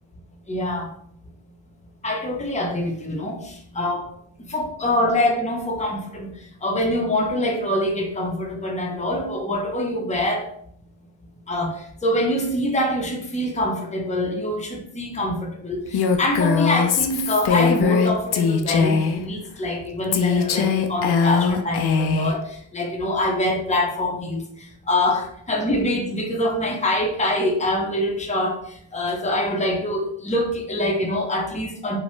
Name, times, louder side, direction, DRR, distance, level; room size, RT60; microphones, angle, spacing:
voice 1, 0.5-0.9 2.0-4.1 4.4-6.3 6.6-10.5 11.5-32.0, left 1 dB, 15° left, 1 dB, 0.7 m, -25 dB
Female speech woman speaking, 15.9-19.2 20.1-22.4, left 6 dB, 55° left, 0.5 m, -21 dB
3.0 x 2.2 x 3.1 m, 0.66 s
cardioid pair, 60°, 48 cm